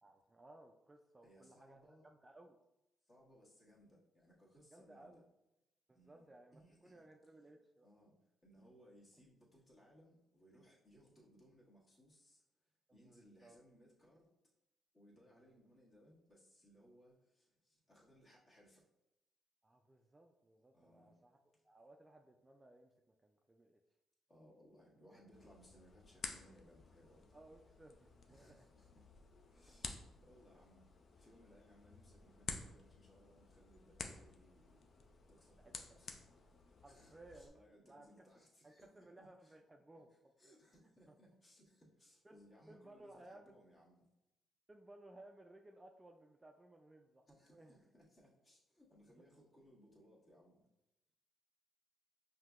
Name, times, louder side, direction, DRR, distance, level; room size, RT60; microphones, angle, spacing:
voice 1, 0.0-2.6 4.7-5.2 5.9-7.9 12.9-13.6 15.3-15.5 19.6-21.4 21.6-23.8 27.3-28.7 29.7-29.9 35.6-36.0 36.8-38.3 38.6-40.1 40.4-40.5 41.1-41.2 42.2-42.4 42.7-43.6 44.7-47.8, right 1 dB, 20° right, 3 dB, 0.3 m, -61 dB
voice 2, 1.2-2.0 3.0-5.2 5.9-7.0 7.8-12.4 12.9-14.3 14.9-18.9 20.7-21.2 21.5-21.6 24.3-27.2 28.3-29.1 29.4-30.8 31.2-34.9 35.3-36.5 36.9-39.6 40.4-44.1 47.3-50.7, equal, 30° left, -5 dB, 1.5 m, -66 dB
sound 1, 25.3-37.5, left 4 dB, 50° left, 0.4 m, -52 dB
5.5 x 2.7 x 2.4 m, 0.90 s
cardioid pair, 90°, 0 cm